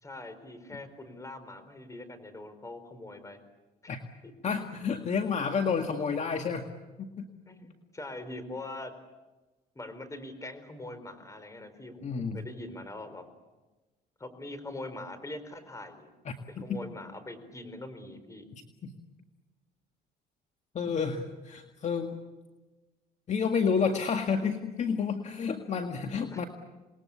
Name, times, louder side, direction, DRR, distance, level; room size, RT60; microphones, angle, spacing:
voice 1, 0.0-3.4 3.8-4.0 4.2-4.3 7.5-8.9 9.7-13.2 14.2-16.1 16.6-18.4 26.3-26.4, left 2 dB, 20° left, 11 dB, 4.4 m, -43 dB
voice 2, 4.4-6.6 7.0-7.3 12.0-12.4 16.3-16.4 16.7-16.8 20.7-22.2 23.3-26.4, left 6 dB, 45° left, 5 dB, 2.0 m, -30 dB
28.0 x 21.0 x 8.5 m, 1.2 s
cardioid pair, 110°, 17 cm